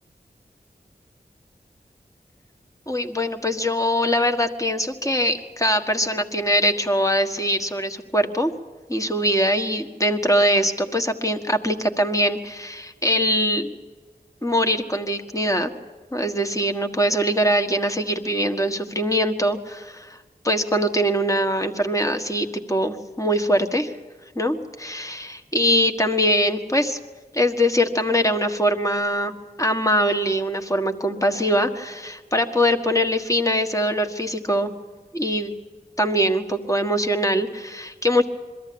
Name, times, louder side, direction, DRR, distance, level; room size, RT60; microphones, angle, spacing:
voice 1, 2.9-8.5 8.9-13.7 14.4-15.7 16.1-20.2 20.4-23.9 24.3-27.0 27.3-34.7 35.1-35.5 36.0-38.3, equal, 20° left, 6 dB, 1.6 m, -22 dB
22.5 x 14.0 x 8.7 m, 1.4 s
wide cardioid pair, 55°, 17 cm